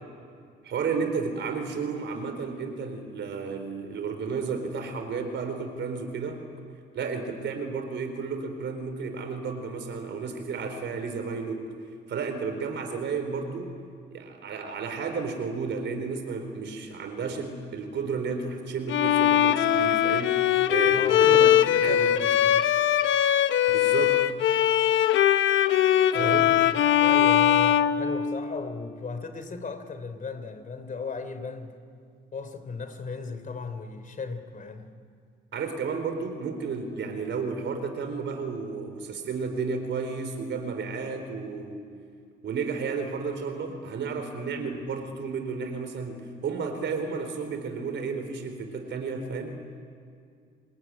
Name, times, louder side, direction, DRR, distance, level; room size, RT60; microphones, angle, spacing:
voice 1, 0.6-6.4 6.9-11.7 12.1-13.7 14.1-21.5 21.8-22.2 23.7-24.2 26.2-26.5 35.5-41.8 42.4-49.6, right 5 dB, 65° right, 7 dB, 4.2 m, -32 dB
Bowed string instrument, 18.9-28.7, left 11 dB, 75° left, 1.0 m, -21 dB
voice 2, 20.9-22.6 26.1-31.7 32.3-34.9, left 4 dB, 40° left, 9 dB, 3.3 m, -36 dB
29.5 x 21.0 x 9.7 m, 2.3 s
cardioid pair, 90°, 20 cm